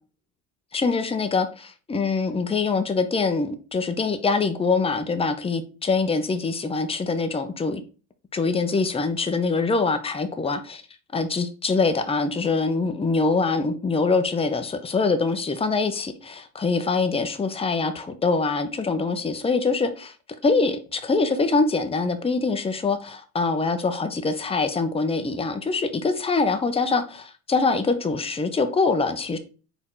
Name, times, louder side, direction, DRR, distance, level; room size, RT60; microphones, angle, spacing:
voice 1, 0.7-7.8 8.3-10.8 11.1-20.1 20.4-29.4, left 4 dB, 15° left, 0.7 m, -24 dB
4.4 x 2.9 x 3.8 m
hypercardioid pair, 75°, 45 cm